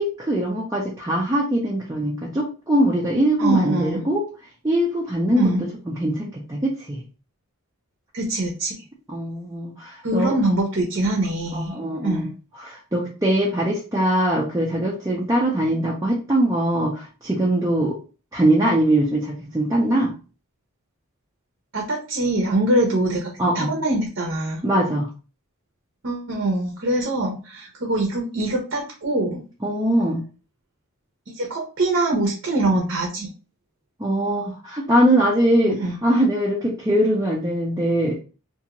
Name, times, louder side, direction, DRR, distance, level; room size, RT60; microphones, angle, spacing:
voice 1, 0.0-4.3 4.6-7.0 9.1-10.4 11.5-12.3 12.6-18.0 18.3-20.1 23.4-23.7 24.6-25.1 29.6-30.2 34.0-38.2, right 1 dB, 15° right, -4 dB, 0.5 m, -22 dB
voice 2, 3.4-4.0 5.3-5.6 8.1-8.7 10.0-12.3 21.7-24.6 26.0-29.4 31.3-33.3 35.8-36.0, right 1 dB, 55° right, 0 dB, 0.7 m, -23 dB
2.6 x 2.4 x 2.9 m, 0.34 s
head